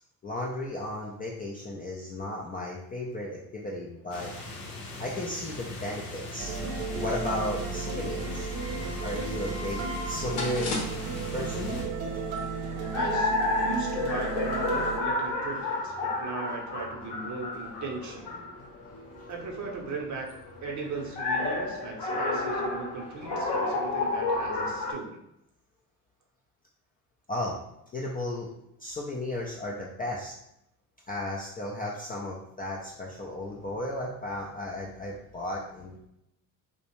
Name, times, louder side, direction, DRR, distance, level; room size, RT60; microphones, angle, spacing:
voice 1, 0.2-4.3 5.0-6.6 6.9-8.5 9.0-10.8 11.3-11.7 27.3-27.6 27.9-28.5 28.8-30.3 31.1-36.0, left 1 dB, 20° left, -3 dB, 0.4 m, -34 dB
sound 1, 4.1-11.9, left 2 dB, 85° left, 0.7 m, -40 dB
sound 2, 6.4-15.0, right 4 dB, 70° right, 0.6 m, -34 dB
sound 3, 10.3-24.9, left 2 dB, 55° left, 0.8 m, -32 dB
voice 2, 12.9-13.3 13.6-18.4 19.3-20.3 20.6-25.2, right 3 dB, 35° right, 0 dB, 0.8 m, -38 dB
2.3 x 2.1 x 3.0 m, 0.80 s
hypercardioid pair, 55°, 48 cm